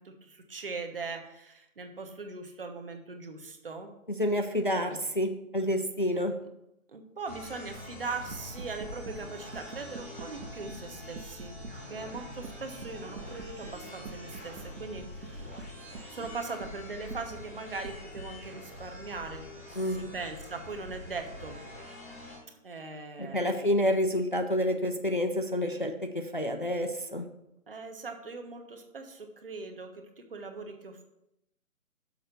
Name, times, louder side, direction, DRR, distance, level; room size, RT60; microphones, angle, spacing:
voice 1, 0.0-3.9 4.9-5.1 6.9-11.6 11.9-15.6 16.1-19.4 19.7-21.6 22.6-23.7 27.7-31.0, right 4 dB, 40° right, 5 dB, 1.1 m, -40 dB
voice 2, 4.2-6.4 19.8-20.1 23.2-27.3, equal, 40° left, 5 dB, 0.4 m, -29 dB
sound 1, 7.3-22.4, left 1 dB, 10° left, 0.9 m, -45 dB
sound 2, 7.7-7.9 8.3-9.2 9.5-10.9 11.2-11.8 12.1-13.8 14.0-16.8 17.1-17.3 17.8-18.3, right 4 dB, 80° right, 1.5 m, -44 dB
6.5 x 5.5 x 6.5 m, 0.84 s
hypercardioid pair, 175°, 42 cm